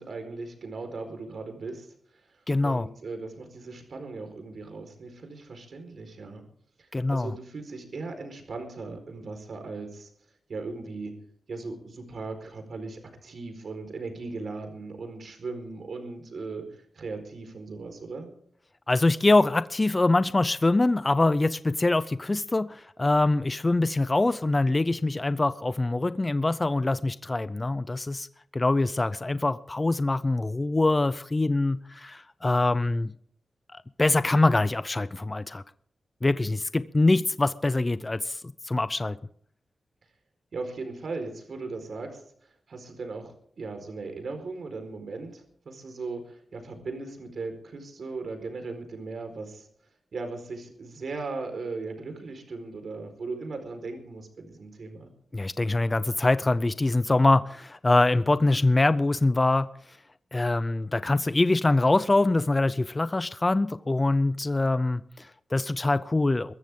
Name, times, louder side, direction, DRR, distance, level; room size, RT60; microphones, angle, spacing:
voice 1, 0.0-1.9 2.6-6.4 6.8-10.1 10.5-11.1 11.5-18.3 40.5-49.7 50.1-55.1, right 3 dB, 60° right, 6 dB, 4.5 m, -38 dB
voice 2, 2.5-2.9 6.9-7.3 18.9-28.3 28.5-33.1 33.7-35.6 36.2-39.2 55.3-59.7 60.3-66.5, left 2 dB, 20° left, 14 dB, 0.5 m, -24 dB
22.5 x 14.0 x 3.7 m, 0.63 s
wide cardioid pair, 155°, 0 cm